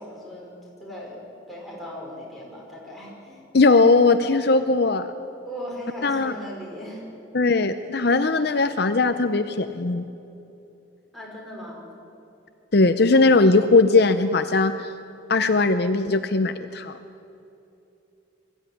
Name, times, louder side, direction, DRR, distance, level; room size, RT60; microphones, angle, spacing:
voice 1, 0.0-3.4 5.4-7.1 11.1-11.8, equal, ahead, -4 dB, 5.2 m, -38 dB
voice 2, 3.5-5.1 6.0-6.3 7.3-10.1 12.7-14.9 15.3-17.0, left 3 dB, 55° left, 9 dB, 0.7 m, -19 dB
22.5 x 15.0 x 10.0 m, 2.8 s
head